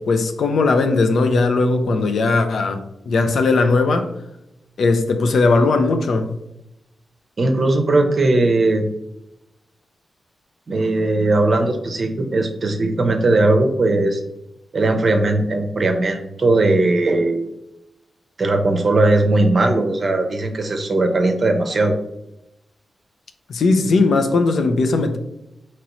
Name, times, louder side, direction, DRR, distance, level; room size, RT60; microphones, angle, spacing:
voice 1, 0.0-2.8 3.1-4.1 4.8-6.3 23.5-25.2, left 3 dB, 70° left, 7 dB, 0.5 m, -18 dB
voice 2, 7.4-8.9 10.7-14.2 14.7-17.5 18.4-22.0, right 2 dB, 40° right, 5 dB, 0.6 m, -18 dB
5.0 x 3.0 x 3.0 m, 0.86 s
wide cardioid pair, 140°, 0 cm